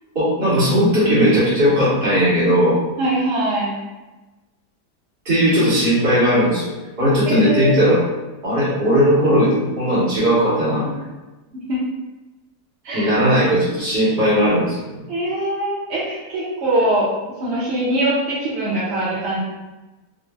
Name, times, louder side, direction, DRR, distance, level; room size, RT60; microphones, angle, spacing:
voice 1, 0.1-2.8 5.2-6.7 7.0-8.0 8.4-10.9 12.9-15.0, equal, 35° right, -10 dB, 1.4 m, -17 dB
voice 2, 3.0-3.7 7.2-7.7 11.7-11.8 12.8-13.1 15.1-17.1 17.4-19.4, right 1 dB, 70° right, -7 dB, 0.6 m, -22 dB
3.9 x 2.0 x 2.3 m, 1.1 s
omnidirectional pair, 1.9 m